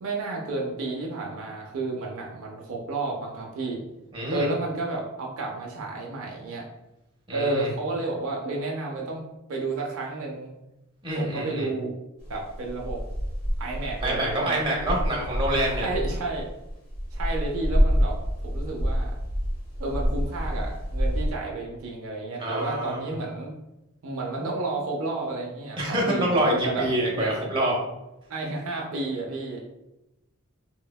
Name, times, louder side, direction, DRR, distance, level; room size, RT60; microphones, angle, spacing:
voice 1, 0.0-3.8 4.3-6.7 7.3-9.2 9.5-10.5 11.2-11.9 12.3-13.0 13.6-14.6 15.7-16.5 17.1-18.2 18.4-19.1 19.8-23.5 24.0-26.9 27.1-27.5 28.3-29.6, right 2 dB, 65° right, -1 dB, 0.4 m, -31 dB
voice 2, 4.1-4.5 7.3-7.7 11.0-11.7 14.0-15.9 22.4-23.0 25.8-27.7, right 1 dB, 25° right, -3 dB, 0.7 m, -26 dB
sound 1, 12.2-21.3, equal, 45° left, 0.7 m, -27 dB
3.7 x 2.0 x 2.2 m, 0.93 s
head